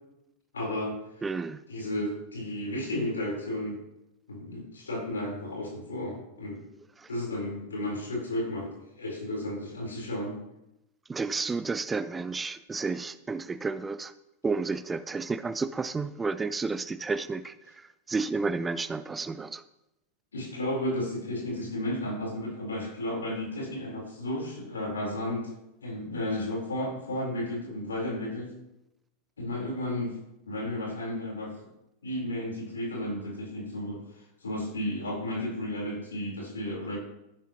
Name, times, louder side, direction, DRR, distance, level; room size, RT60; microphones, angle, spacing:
voice 1, 0.5-1.0 1.7-3.8 4.3-6.6 7.1-10.4 20.3-25.5 25.8-28.5 29.4-30.2 30.5-31.5 32.0-34.0 34.4-37.0, left 1 dB, 70° left, -1 dB, 4.3 m, -33 dB
voice 2, 1.2-1.6 7.0-7.1 11.1-14.1 14.4-19.6, right 4 dB, 15° right, 14 dB, 0.5 m, -31 dB
13.5 x 11.0 x 3.1 m, 0.91 s
figure-of-eight pair, 90°, 0 cm